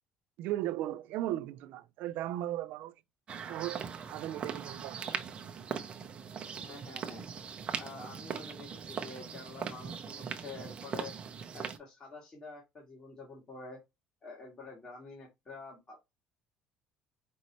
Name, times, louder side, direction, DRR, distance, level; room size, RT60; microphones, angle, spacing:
voice 1, 0.4-2.9 3.5-5.1, right 14 dB, 70° right, 0.3 m, -36 dB
sound 1, 3.3-11.8, right 7 dB, 35° right, 0.8 m, -40 dB
voice 2, 6.7-7.2 7.8-11.1 11.5-13.8 14.2-16.1, left 3 dB, 30° left, 1.8 m, -48 dB
5.3 x 2.7 x 3.0 m
cardioid pair, 120°, 3 cm